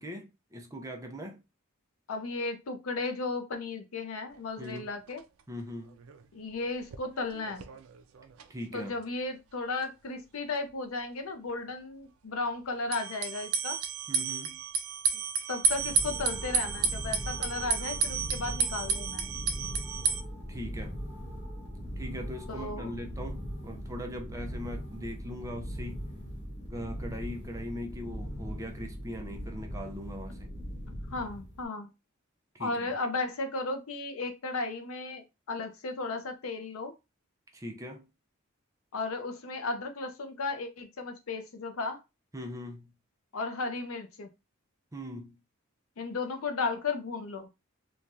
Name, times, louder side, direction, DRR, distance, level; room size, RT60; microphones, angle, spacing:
voice 1, 0.0-1.4 4.6-4.9 5.5-6.0 8.5-8.9 14.1-14.6 20.5-21.0 22.0-26.1 26.7-30.5 32.5-32.9 37.5-38.1 42.3-42.9 44.9-45.4, equal, 15° right, 0.5 m, -40 dB
voice 2, 2.1-5.2 6.3-7.7 8.7-13.8 15.5-19.3 22.5-23.0 31.1-31.9 32.6-36.9 38.9-42.0 43.3-44.3 46.0-47.5, left 3 dB, 80° left, 0.6 m, -35 dB
sound 1, 4.3-4.4 4.8-4.9 5.1-5.2 5.8-6.2 6.5-8.5 8.8-8.9 12.9-20.2, right 5 dB, 75° right, 0.4 m, -32 dB
sound 2, 15.7-31.7, equal, 55° left, 1.2 m, -40 dB
3.1 x 2.3 x 2.6 m
head